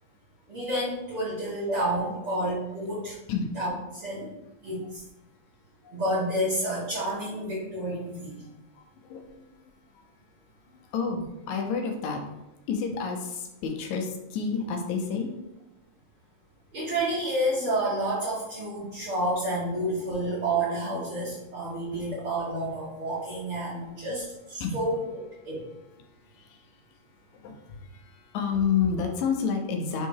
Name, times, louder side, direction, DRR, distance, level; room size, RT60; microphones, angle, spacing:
voice 1, 0.5-3.1 3.5-4.4 4.6-5.0 5.9-8.4 16.7-25.6, right 1 dB, 50° right, -9 dB, 2.0 m, -30 dB
voice 2, 8.7-9.6 10.7-12.2 12.7-15.3 24.6-24.8 26.0-27.0 27.3-30.1, left 6 dB, 75° left, 3 dB, 2.0 m, -30 dB
5.5 x 3.7 x 4.7 m, 0.93 s
omnidirectional pair, 3.6 m